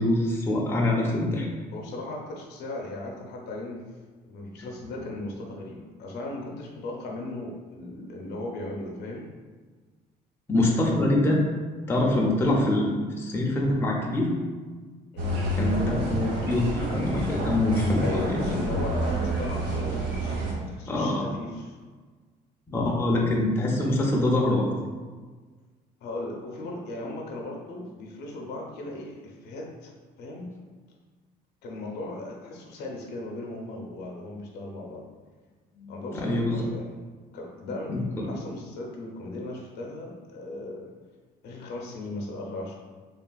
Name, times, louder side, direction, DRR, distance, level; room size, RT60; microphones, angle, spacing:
voice 1, 0.0-1.5 10.5-11.4 11.9-14.3 15.5-18.6 20.9-21.3 22.7-24.7 35.8-36.7 37.9-38.3, left 1 dB, 15° left, -2 dB, 0.4 m, -25 dB
voice 2, 1.7-3.8 4.3-9.3 15.1-15.5 18.0-21.7 26.0-29.9 30.2-30.5 31.6-35.1 35.9-37.0 37.3-40.9 41.4-42.7, left 2 dB, 75° left, 0 dB, 0.6 m, -37 dB
sound 1, 15.2-20.5, right 1 dB, 85° right, 0.7 m, -28 dB
3.3 x 2.4 x 2.2 m, 1.4 s
cardioid pair, 110°, 17 cm